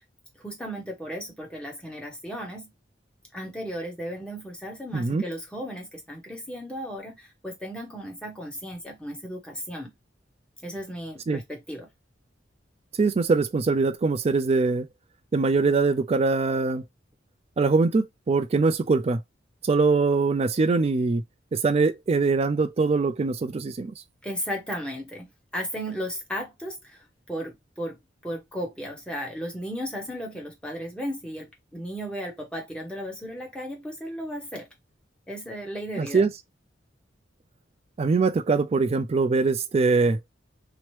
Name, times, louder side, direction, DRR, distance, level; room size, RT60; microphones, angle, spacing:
voice 1, 0.4-2.7 3.3-9.9 10.6-11.9 24.2-28.0 28.2-34.7 35.3-36.3, equal, 5° left, 1.0 m, -35 dB
voice 2, 4.9-5.2 11.3-11.4 13.0-14.9 15.3-16.8 17.6-19.2 19.6-21.2 21.5-23.9 36.0-36.3 38.0-40.2, right 4 dB, 35° right, 0.3 m, -22 dB
2.9 x 2.1 x 3.1 m
head